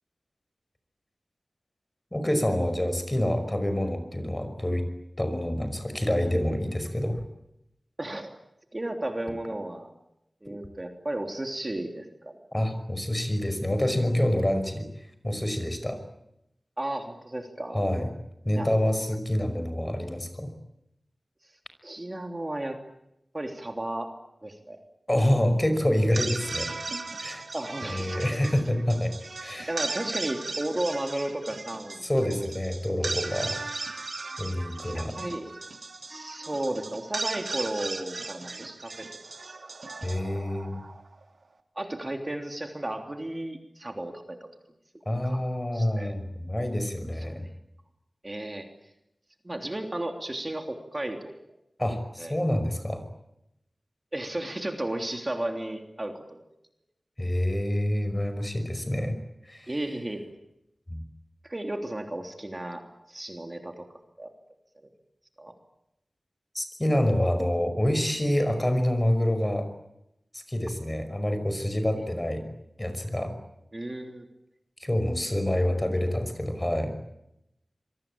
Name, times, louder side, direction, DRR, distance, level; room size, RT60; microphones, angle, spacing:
voice 1, 2.1-4.9 5.2-7.2 12.5-14.9 15.2-16.0 17.7-18.1 18.4-20.5 25.1-26.7 27.2-27.5 27.8-29.1 29.4-29.7 32.0-33.6 34.4-35.1 40.0-40.8 45.1-47.4 51.8-53.0 57.2-59.2 59.5-59.7 60.9-61.0 66.5-69.7 70.3-72.5 72.8-73.3 74.8-76.9, left 1 dB, 20° left, 9 dB, 5.5 m, -27 dB
voice 2, 8.0-8.3 8.7-9.9 10.4-12.5 16.8-17.8 18.5-18.7 21.8-22.8 23.3-24.1 24.4-24.8 27.5-28.3 29.7-32.0 34.9-35.6 36.1-39.1 41.7-44.5 45.2-45.5 45.7-46.2 47.4-47.5 48.2-48.7 49.4-51.6 52.2-52.4 54.1-56.4 59.7-60.3 61.4-63.9 64.2-64.3 64.8-64.9 65.4-65.5 72.0-72.1 73.7-74.3, right 1 dB, 30° right, 4 dB, 3.2 m, -34 dB
sound 1, 26.0-41.2, right 3 dB, 70° right, 2.7 m, -37 dB
27.0 x 23.0 x 8.8 m, 0.84 s
wide cardioid pair, 75°, 0 cm